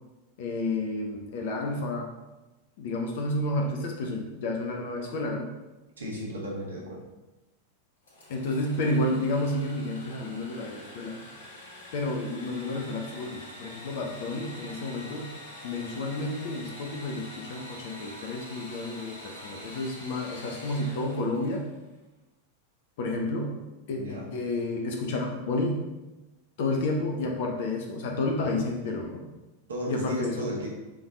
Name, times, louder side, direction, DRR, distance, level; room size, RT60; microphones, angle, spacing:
voice 1, 0.4-2.1 2.8-5.5 8.3-11.2 11.9-15.3 15.6-21.6 23.0-23.6 23.9-25.8 26.6-29.2 29.9-30.4, left 2 dB, 50° left, 1 dB, 0.8 m, -30 dB
voice 2, 6.0-7.0 23.9-24.3 29.7-30.7, equal, 70° right, -3 dB, 1.6 m, -34 dB
Engine / Sawing, 8.0-21.7, left 1 dB, 70° left, 2.0 m, -45 dB
6.9 x 3.5 x 3.9 m, 1.1 s
figure-of-eight pair, 90°, 0 cm